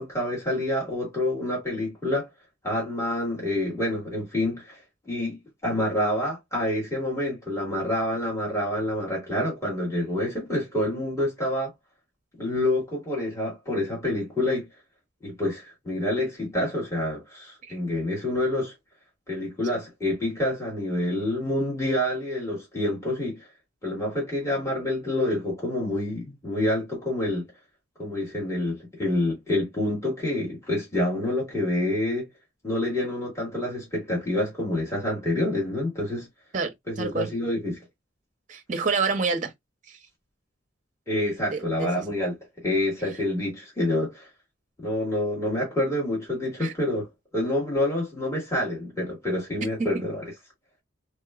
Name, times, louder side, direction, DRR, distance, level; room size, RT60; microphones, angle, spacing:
voice 1, 0.0-2.3 2.6-4.8 5.0-11.7 12.4-14.7 15.2-18.7 19.3-23.5 23.8-27.4 28.0-32.3 32.6-36.3 36.9-37.8 41.1-44.3 44.8-47.1 47.3-50.2, left 1 dB, 15° left, 1.7 m, -27 dB
voice 2, 36.5-37.3 38.5-39.5 39.9-40.0 41.5-41.9 46.6-46.7, right 4 dB, 40° right, 0.6 m, -28 dB
3.3 x 2.9 x 2.3 m
head